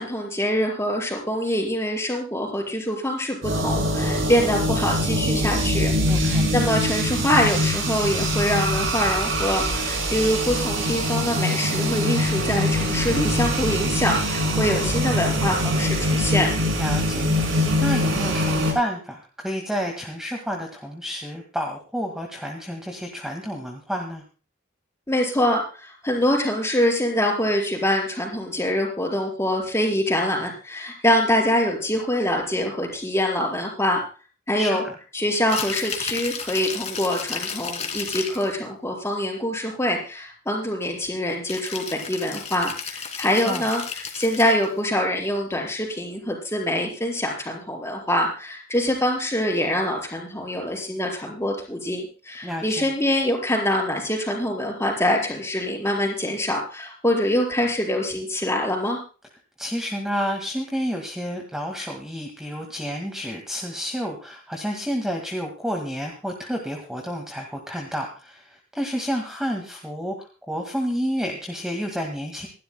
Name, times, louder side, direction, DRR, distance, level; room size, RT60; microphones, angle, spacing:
voice 1, 0.0-16.5 25.1-34.0 34.5-34.8 35.1-59.0, left 1 dB, 15° left, 0 dB, 4.5 m, -24 dB
sound 1, 3.4-18.7, equal, 75° right, 5.8 m, -23 dB
voice 2, 6.1-6.5 16.8-24.2 34.6-34.9 43.4-43.6 52.4-52.9 59.6-70.1 70.5-72.5, equal, 5° right, 1 dB, 1.8 m, -30 dB
Rattle (instrument), 35.4-38.5 41.5-44.7, left 6 dB, 35° left, 2.5 m, -33 dB
27.0 x 12.0 x 2.2 m, 0.36 s
head